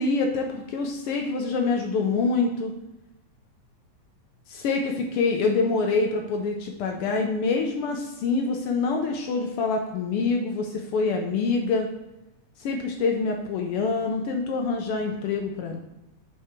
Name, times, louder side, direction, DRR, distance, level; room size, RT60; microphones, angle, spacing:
voice 1, 0.0-2.7 4.5-11.9 12.6-15.8, left 4 dB, 90° left, 2 dB, 1.2 m, -26 dB
6.5 x 4.8 x 4.4 m, 0.93 s
omnidirectional pair, 3.4 m